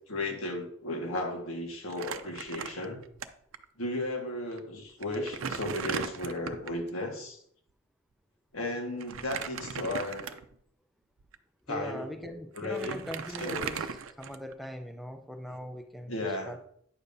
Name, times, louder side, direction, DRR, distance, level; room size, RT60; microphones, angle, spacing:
voice 1, 0.1-3.0 3.8-7.4 8.5-10.4 11.7-13.0 13.4-13.7 16.1-16.5, left 2 dB, 90° left, 1.6 m, -35 dB
Crumpling crinkling, 1.9-3.2 3.5-3.6 4.5-4.6 5.0-6.8 9.0-10.6 11.2-11.3 12.2-12.3 12.6-14.6, right 6 dB, 80° right, 0.5 m, -37 dB
voice 2, 11.7-13.9 14.2-16.6, equal, ahead, 0.4 m, -41 dB
9.6 x 7.0 x 2.6 m
head